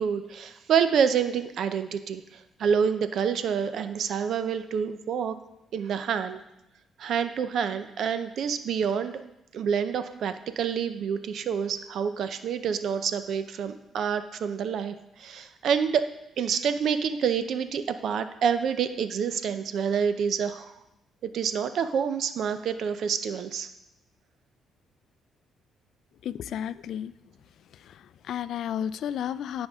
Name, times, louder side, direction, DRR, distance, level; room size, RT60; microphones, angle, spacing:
voice 1, 0.0-5.4 5.7-6.4 7.0-9.2 9.5-16.1 16.4-20.7 21.2-23.7, right 7 dB, 70° right, 11 dB, 0.5 m, -27 dB
voice 2, 26.2-27.1 27.8-29.7, left 9 dB, 75° left, 16 dB, 0.3 m, -32 dB
15.0 x 5.3 x 3.6 m, 0.89 s
cardioid pair, 90°, 0 cm